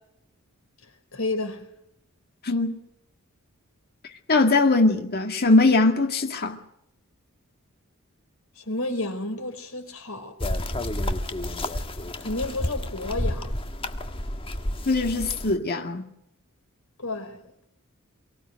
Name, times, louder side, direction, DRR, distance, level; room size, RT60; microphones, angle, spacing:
voice 1, 1.1-1.6 8.6-10.3 12.2-13.6 17.0-17.4, left 2 dB, 70° left, 4.8 m, -31 dB
voice 2, 2.4-2.7 4.3-6.6 14.9-16.0, left 3 dB, 45° left, 2.0 m, -21 dB
sound 1, 10.4-15.6, left 1 dB, 25° left, 1.5 m, -30 dB
24.0 x 15.5 x 9.2 m
head